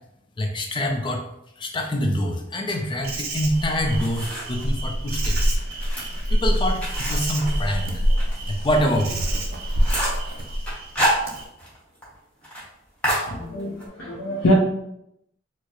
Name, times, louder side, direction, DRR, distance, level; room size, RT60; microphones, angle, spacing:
voice 1, 0.4-1.2 1.6-5.6 6.3-8.0 8.5-9.3, equal, 25° left, 3 dB, 0.4 m, -25 dB
Insect, 3.0-11.4, equal, 50° right, 0.5 m, -26 dB
sound 1, 3.5-4.7 5.1-8.4 8.7-8.8 9.2-9.3 9.6-10.3 10.7-11.8 12.0-12.1 12.4-12.6 13.0-13.9, equal, 5° left, 1.0 m, -28 dB
voice 2, 13.3-14.5, left 1 dB, 80° left, -5 dB, 0.6 m, -24 dB
4.5 x 2.0 x 3.0 m, 0.80 s
head